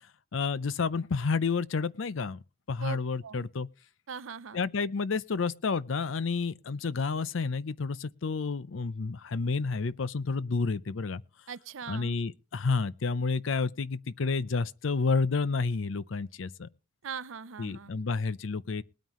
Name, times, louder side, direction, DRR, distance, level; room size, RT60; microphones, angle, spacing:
voice 1, 0.3-2.4 2.7-3.7 4.5-11.2 11.9-16.7 17.6-18.8, left 4 dB, 75° left, 0.6 m, -30 dB
voice 2, 4.1-4.6 11.5-12.2 17.0-18.0, right 6 dB, 80° right, 0.6 m, -40 dB
20.5 x 9.1 x 3.1 m
head